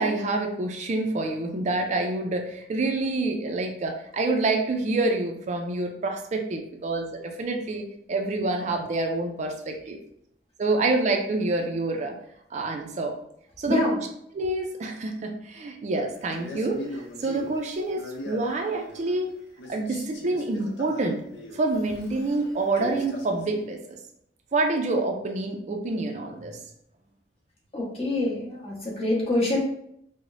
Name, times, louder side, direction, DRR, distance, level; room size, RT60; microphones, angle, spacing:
voice 1, 0.0-10.0 10.6-12.2 12.5-13.2 13.6-14.0 14.3-19.3 19.7-21.2 21.5-24.0 24.5-26.6, right 2 dB, 40° right, 3 dB, 0.4 m, -27 dB
voice 2, 13.7-14.0 27.7-29.6, left 2 dB, 35° left, -5 dB, 1.2 m, -26 dB
Male speech man speaking, 16.3-19.3 19.6-23.7, left 1 dB, 85° left, 0.6 m, -40 dB
4.8 x 2.1 x 2.5 m, 0.73 s
head